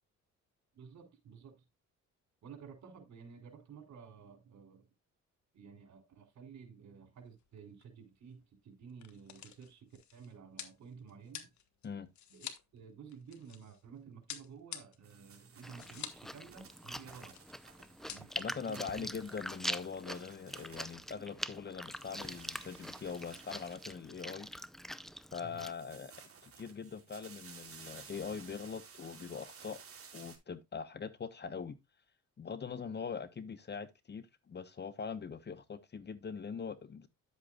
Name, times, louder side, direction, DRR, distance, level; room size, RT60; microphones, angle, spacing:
voice 1, 0.7-1.6 2.4-4.9 5.5-11.5 12.3-12.5 12.7-17.3 18.1-19.1 25.4-25.7, right 6 dB, 65° right, 3.6 m, -53 dB
sound 1, 7.3-7.5 7.8-7.9 8.7-13.8 14.3-16.3 16.6-16.7 16.9-17.5 17.8-18.4, left 9 dB, 70° left, 1.5 m, -48 dB
sound 2, 15.0-21.6 21.8-24.7 25.5-30.4, right 6 dB, 50° right, 3.4 m, -56 dB
Chewing mastication, 15.6-25.7, equal, ahead, 0.6 m, -44 dB
voice 2, 18.4-24.5 25.3-26.1 26.4-29.8 30.1-31.8 32.4-37.1, left 6 dB, 35° left, 1.0 m, -42 dB
10.5 x 8.0 x 2.4 m
cardioid pair, 90°, 30 cm